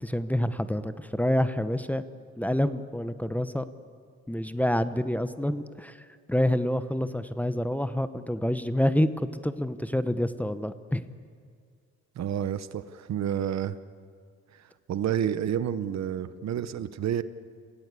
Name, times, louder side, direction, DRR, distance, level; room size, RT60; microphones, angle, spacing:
voice 1, 0.0-2.0 2.4-3.7 4.3-6.0 6.3-11.0, left 1 dB, 5° left, 12 dB, 0.9 m, -27 dB
voice 2, 12.2-13.8 14.9-17.2, right 9 dB, 60° right, 14 dB, 1.0 m, -29 dB
27.5 x 17.0 x 8.4 m, 2.1 s
cardioid pair, 90°, 30 cm